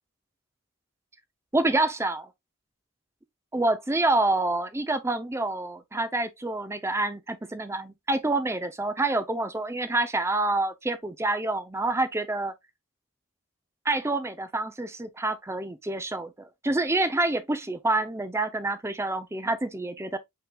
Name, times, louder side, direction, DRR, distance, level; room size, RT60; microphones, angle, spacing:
voice 1, 1.5-2.3 3.5-12.5 13.8-16.3 16.6-20.2, right 2 dB, 10° right, 0.5 m, -27 dB
5.5 x 3.9 x 2.3 m
head